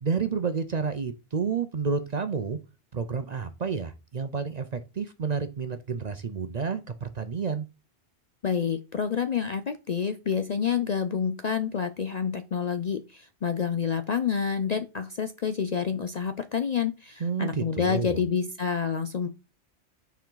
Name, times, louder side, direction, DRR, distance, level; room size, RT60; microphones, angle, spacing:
voice 1, 0.0-2.6 2.9-7.7 17.2-18.2, right 5 dB, 45° right, 0.6 m, -30 dB
voice 2, 8.4-19.3, left 7 dB, 50° left, 0.5 m, -28 dB
7.0 x 4.6 x 3.8 m
omnidirectional pair, 1.2 m